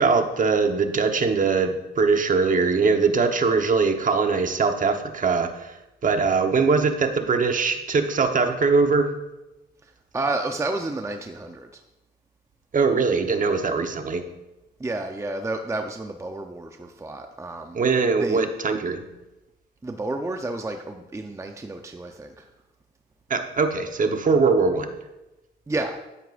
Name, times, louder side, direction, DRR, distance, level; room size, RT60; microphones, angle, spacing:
voice 1, 0.0-5.7 6.0-9.1 12.7-14.2 17.7-19.0 23.3-24.9, right 4 dB, 40° right, 6 dB, 1.1 m, -21 dB
voice 2, 9.8-11.7 14.8-17.8 18.2-18.4 19.8-22.5 25.7-26.0, right 2 dB, 15° right, 5 dB, 0.7 m, -31 dB
11.5 x 10.0 x 2.5 m, 1.0 s
cardioid pair, 90°, 20 cm